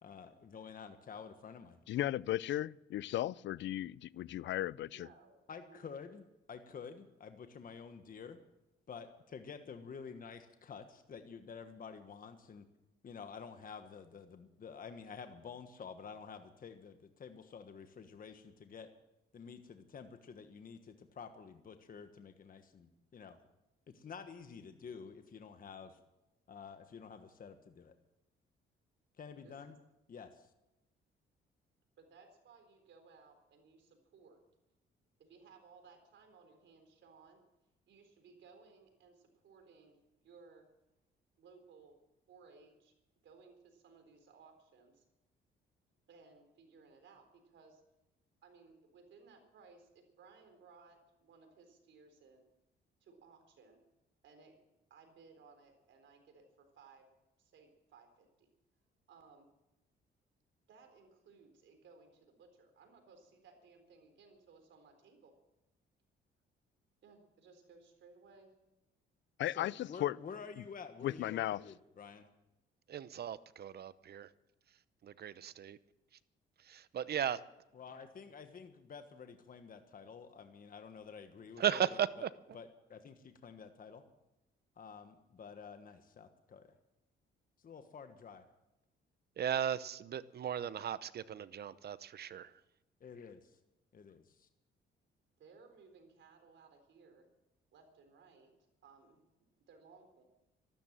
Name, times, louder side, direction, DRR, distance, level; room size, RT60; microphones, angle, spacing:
voice 1, 0.0-1.8 5.5-6.2 6.5-8.4 8.9-12.6 13.0-18.9 19.3-23.4 23.9-26.0 26.5-27.9 29.2-29.7 30.1-30.5 69.6-72.3 77.7-82.3 82.5-84.0 84.8-86.7 87.6-88.4 93.0-93.6 93.9-94.5, left 6 dB, 45° left, 1.4 m, -50 dB
voice 2, 1.9-5.1 69.4-70.2 70.6-70.7 71.0-71.6, left 13 dB, 65° left, 0.4 m, -36 dB
voice 3, 4.8-5.4 5.6-5.9 29.4-29.7 32.0-34.4 35.2-37.4 37.9-40.0 40.2-40.7 41.4-42.0 42.3-42.9 43.2-45.0 46.1-47.8 48.4-52.5 53.0-53.8 54.2-54.6 54.9-57.1 57.4-58.5 59.1-59.5 60.7-65.3 67.0-68.5 95.4-97.3 97.7-98.5 98.8-99.2 99.7-100.2, right 4 dB, 70° right, 3.9 m, -61 dB
voice 4, 72.9-74.3 75.0-75.8 76.7-77.4 81.6-82.3 89.4-92.5, right 9 dB, 55° right, 0.8 m, -36 dB
13.5 x 12.5 x 7.5 m
cardioid pair, 90°, 20 cm